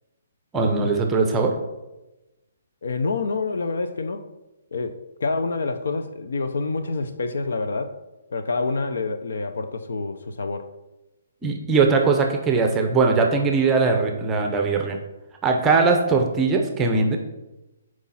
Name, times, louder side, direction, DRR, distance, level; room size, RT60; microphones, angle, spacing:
voice 1, 0.5-1.5 11.4-15.0 15.4-17.2, right 4 dB, 10° right, 3 dB, 0.7 m, -20 dB
voice 2, 2.8-4.3 4.7-7.9 8.3-10.7, left 3 dB, 75° left, 9 dB, 0.8 m, -27 dB
6.3 x 4.7 x 5.7 m, 1.0 s
hypercardioid pair, 170°, 0 cm